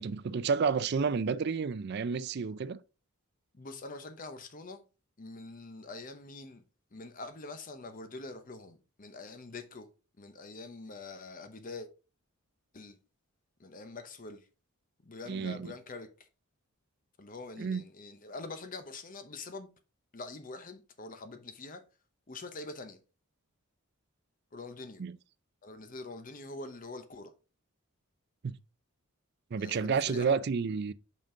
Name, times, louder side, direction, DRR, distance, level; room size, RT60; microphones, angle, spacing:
voice 1, 0.0-2.8 15.3-15.7 17.6-17.8 25.0-25.2 28.4-28.6 29.5-30.9, right 5 dB, 45° right, 0.4 m, -30 dB
voice 2, 3.5-4.8 5.2-6.6 6.9-9.9 10.2-11.9 12.7-13.0 13.6-14.5 15.0-16.1 17.2-19.7 20.1-21.8 22.3-23.0 24.5-25.0 25.6-27.3 29.6-30.4, left 3 dB, 40° left, 0.8 m, -44 dB
5.6 x 5.2 x 3.8 m
head